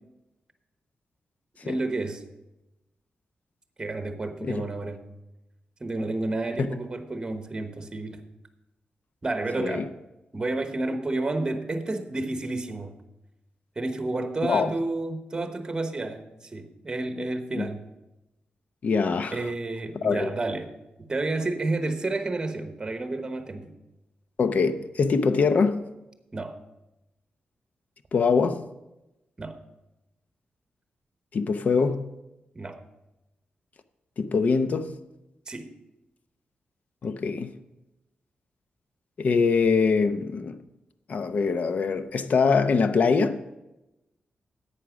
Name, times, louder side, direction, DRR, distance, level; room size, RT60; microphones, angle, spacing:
voice 1, 1.6-2.2 3.8-5.0 5.8-8.2 9.2-9.9 10.3-12.9 13.8-17.8 19.3-20.7 21.1-23.7 26.3-26.6 29.4-29.6 32.5-32.8 35.5-35.7, right 2 dB, 25° right, 1.0 m, -30 dB
voice 2, 9.6-9.9 14.4-14.7 17.5-17.7 18.8-19.4 20.0-20.3 24.4-25.8 28.1-28.6 31.3-32.1 34.2-34.9 37.0-37.5 39.2-40.6 41.1-43.4, left 5 dB, 55° left, 0.7 m, -23 dB
11.0 x 8.4 x 5.1 m
wide cardioid pair, 145°, 3 cm